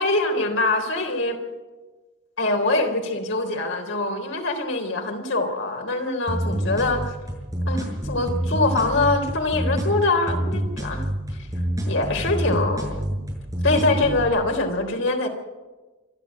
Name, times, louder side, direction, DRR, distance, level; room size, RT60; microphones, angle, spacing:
voice 1, 0.0-1.4 2.4-7.2 7.7-11.1 11.9-13.0 13.6-15.3, left 2 dB, 80° left, 3 dB, 3.8 m, -24 dB
sound 1, 6.3-14.3, equal, 20° right, 7.1 m, -27 dB
26.0 x 12.0 x 8.6 m, 1.2 s
head